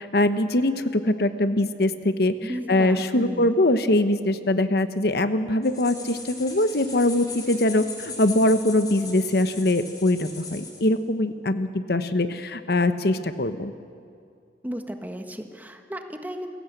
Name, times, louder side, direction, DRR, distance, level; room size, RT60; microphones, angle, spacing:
voice 1, 0.0-13.7, left 1 dB, 60° left, 11 dB, 1.0 m, -22 dB
voice 2, 2.4-3.5 14.6-16.5, equal, 10° right, 5 dB, 1.4 m, -34 dB
sound 1, 5.6-10.9, left 3 dB, 20° left, 3.7 m, -39 dB
28.5 x 16.5 x 8.0 m, 2.4 s
head